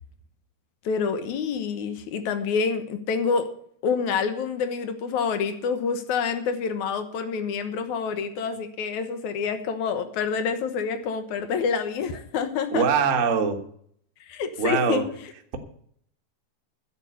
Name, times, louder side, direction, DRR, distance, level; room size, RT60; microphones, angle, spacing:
voice 1, 0.8-3.5 3.8-12.9 14.3-15.1, left 5 dB, 70° left, 9 dB, 2.4 m, -27 dB
voice 2, 12.7-13.6 14.6-15.0, right 6 dB, 65° right, 4 dB, 0.7 m, -22 dB
10.5 x 8.0 x 8.0 m, 0.63 s
omnidirectional pair, 3.7 m